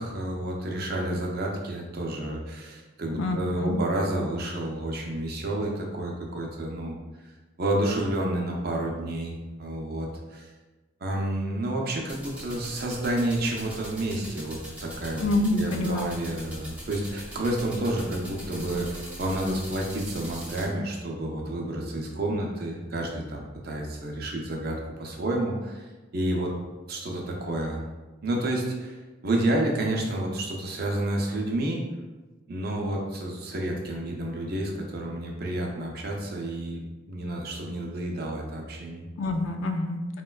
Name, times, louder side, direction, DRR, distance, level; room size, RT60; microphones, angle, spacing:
voice 1, 0.0-7.0 7.6-10.5 11.0-15.3 15.5-25.9 26.1-26.5 26.9-27.8 28.2-31.8 32.5-39.1, right 1 dB, 50° right, -1 dB, 0.5 m, -30 dB
voice 2, 3.1-3.8 15.1-16.1 39.2-40.2, left 2 dB, 85° left, 5 dB, 0.4 m, -27 dB
sound 1, 12.1-20.7, equal, 10° right, 0.6 m, -42 dB
4.0 x 2.2 x 2.3 m, 1.2 s
head